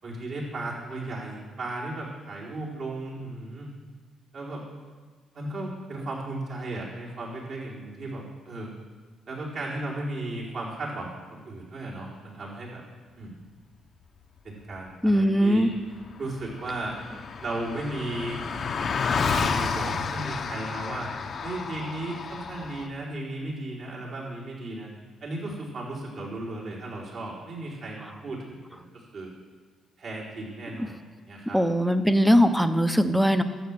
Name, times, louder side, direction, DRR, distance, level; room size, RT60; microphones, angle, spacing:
voice 1, 0.0-3.7 4.3-4.7 5.3-8.7 9.3-12.8 13.2-13.3 14.4-15.7 16.2-17.0 17.4-18.4 19.2-21.1 21.4-24.9 25.2-29.3 30.0-31.0 31.3-31.6, right 2 dB, 60° right, -5 dB, 4.4 m, -35 dB
voice 2, 15.0-15.7 31.5-33.4, equal, ahead, 9 dB, 0.9 m, -20 dB
Car passing by, 15.8-15.9 16.0-22.9, left 5 dB, 50° left, 0.9 m, -31 dB
12.0 x 7.4 x 7.6 m, 1.4 s
cardioid pair, 90°, 0 cm